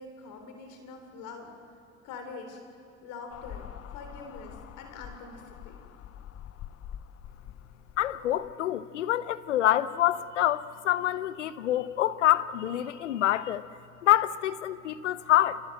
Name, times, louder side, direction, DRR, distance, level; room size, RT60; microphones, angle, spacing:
voice 1, 0.0-1.5 2.0-2.6 3.0-5.8, left 4 dB, 65° left, 5 dB, 3.5 m, -44 dB
sound 1, 3.3-8.5, left 10 dB, 45° left, 0.9 m, -45 dB
voice 2, 8.0-13.6 14.0-15.6, left 12 dB, 90° left, 16 dB, 0.7 m, -26 dB
27.5 x 16.5 x 7.7 m, 2.6 s
hypercardioid pair, 70°, 35 cm